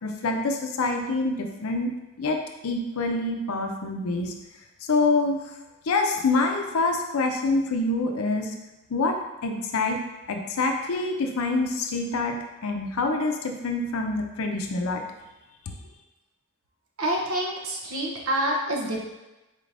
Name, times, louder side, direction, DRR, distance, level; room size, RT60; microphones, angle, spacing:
voice 1, 0.0-1.9 2.2-4.3 4.8-5.4 5.8-8.5 8.9-9.2 9.4-10.0 10.3-15.0, left 3 dB, 75° left, 3 dB, 0.5 m, -26 dB
voice 2, 17.0-19.0, right 1 dB, 85° right, -1 dB, 0.8 m, -27 dB
4.2 x 3.3 x 2.5 m, 1.0 s
head